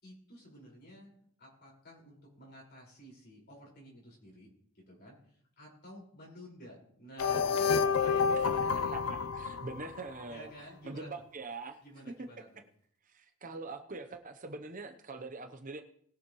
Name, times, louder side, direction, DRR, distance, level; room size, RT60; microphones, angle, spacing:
voice 1, 0.0-4.5 4.7-9.3 10.3-11.1 11.8-12.6, equal, 50° left, -3 dB, 5.3 m, -51 dB
sound 1, 7.2-10.2, left 6 dB, 85° left, 0.6 m, -29 dB
voice 2, 8.9-10.5 10.8-11.8 13.1-15.8, right 3 dB, 40° right, 7 dB, 0.9 m, -43 dB
20.5 x 7.2 x 3.2 m, 0.64 s
head